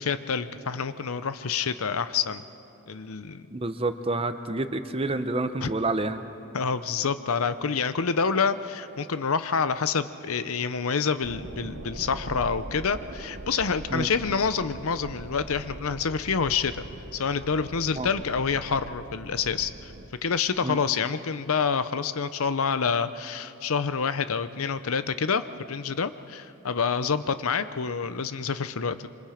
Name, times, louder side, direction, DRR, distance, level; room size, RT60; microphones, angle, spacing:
voice 1, 0.0-2.4 2.9-3.5 5.6-5.7 6.5-16.7 17.1-19.9 20.2-29.1, left 5 dB, 75° left, 13 dB, 0.7 m, -27 dB
voice 2, 3.5-6.2 13.9-14.1 18.0-18.1 20.6-20.8, right 2 dB, 25° right, 9 dB, 0.7 m, -28 dB
sound 1, 11.2-20.1, right 2 dB, 50° right, 0.9 m, -41 dB
26.5 x 26.0 x 5.0 m, 2.8 s
head